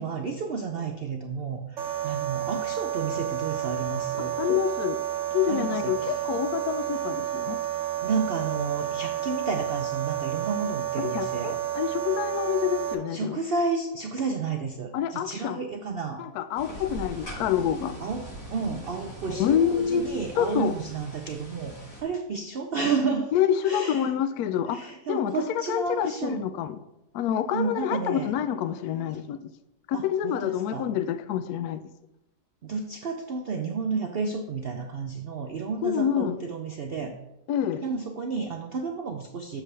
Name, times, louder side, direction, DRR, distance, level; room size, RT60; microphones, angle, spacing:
voice 1, 0.0-4.3 5.5-6.2 8.0-11.6 13.1-16.2 18.0-23.3 23.6-24.1 24.7-26.4 27.5-28.3 29.9-30.9 32.6-37.1 37.8-39.6, right 4 dB, 80° right, 0.5 m, -31 dB
sound 1, 1.8-12.9, right 11 dB, 55° right, 0.9 m, -30 dB
voice 2, 4.4-5.0 5.3-7.6 11.0-13.4 14.9-15.6 16.2-18.0 19.3-20.0 20.4-20.8 23.3-25.4 25.7-26.8 27.1-29.5 29.9-31.8 35.8-36.4 37.5-37.9, left 9 dB, 70° left, 1.0 m, -27 dB
sound 2, 16.6-22.0, right 1 dB, 50° left, 3.8 m, -41 dB
8.0 x 7.4 x 3.3 m
omnidirectional pair, 1.8 m